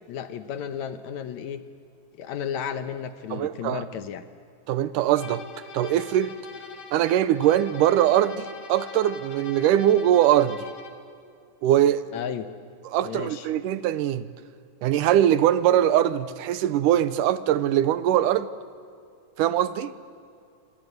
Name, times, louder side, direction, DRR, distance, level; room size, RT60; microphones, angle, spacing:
voice 1, 0.1-1.6 2.2-4.2 12.1-12.5 13.0-13.5, left 8 dB, 70° left, 2.2 m, -33 dB
voice 2, 3.3-3.8 4.7-5.4 5.7-6.4 6.9-10.7 11.6-12.0 12.9-14.3 14.8-18.5 19.4-19.9, right 11 dB, 90° right, 2.4 m, -22 dB
sound 1, 5.2-11.1, left 6 dB, 55° left, 2.6 m, -43 dB
28.5 x 25.0 x 8.0 m
omnidirectional pair, 3.6 m